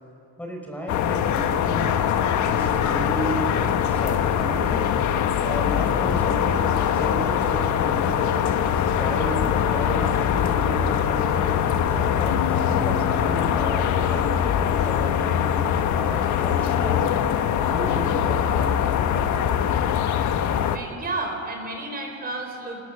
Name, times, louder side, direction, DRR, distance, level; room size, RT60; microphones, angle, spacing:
voice 1, 0.4-2.0 2.4-4.8 5.4-8.5 9.0-11.5 11.9-14.4 14.8-15.6 15.9-17.1 17.6-19.3, right 1 dB, 5° left, 1 dB, 4.4 m, -34 dB
sound 1, 0.9-20.8, left 9 dB, 60° left, 1.4 m, -22 dB
sound 2, 12.3-15.9, left 5 dB, 80° left, 3.3 m, -38 dB
voice 2, 20.6-22.8, right 2 dB, 25° right, 2 dB, 4.0 m, -31 dB
28.5 x 20.0 x 6.9 m, 2.7 s
cardioid pair, 130°, 33 cm